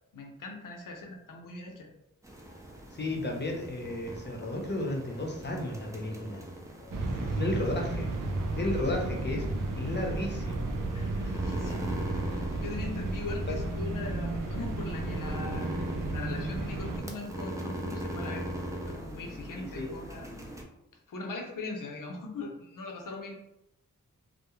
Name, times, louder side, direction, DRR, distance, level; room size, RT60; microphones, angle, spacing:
voice 1, 0.1-1.9 3.1-3.3 7.0-7.5 8.6-8.7 10.9-12.0 12.3-15.7 16.1-18.5 18.8-20.3 21.1-23.3, left 3 dB, 75° left, 1 dB, 0.6 m, -41 dB
sound 1, 2.2-20.6, equal, 10° right, 0.5 m, -41 dB
voice 2, 2.9-6.5 7.3-8.1 8.6-9.5 9.7-10.7 11.7-11.9 13.5-13.6 19.5-19.9, left 1 dB, 35° left, 1 dB, 0.7 m, -33 dB
sound 2, 6.9-17.0, right 2 dB, 75° right, 0.5 m, -33 dB
2.3 x 2.1 x 3.0 m, 0.85 s
cardioid pair, 45°, 32 cm